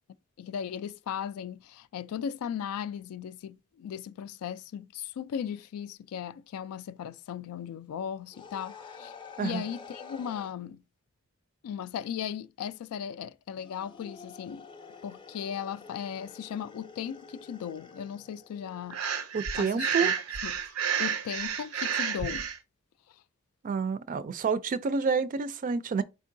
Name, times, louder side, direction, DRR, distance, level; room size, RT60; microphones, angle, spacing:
voice 1, 0.4-9.1 9.4-10.8 11.6-14.7 15.0-19.0 19.6-20.1 20.4-20.6 21.0-22.5, left 8 dB, 85° left, 0.3 m, -37 dB
sound 1, 8.3-10.5 13.6-19.1, left 5 dB, 20° left, 0.5 m, -48 dB
voice 2, 9.4-9.7 19.3-20.1 23.6-26.0, right 5 dB, 40° right, 0.3 m, -29 dB
Breathing, 18.9-22.6, right 7 dB, 80° right, 0.6 m, -30 dB
4.4 x 3.6 x 2.6 m
head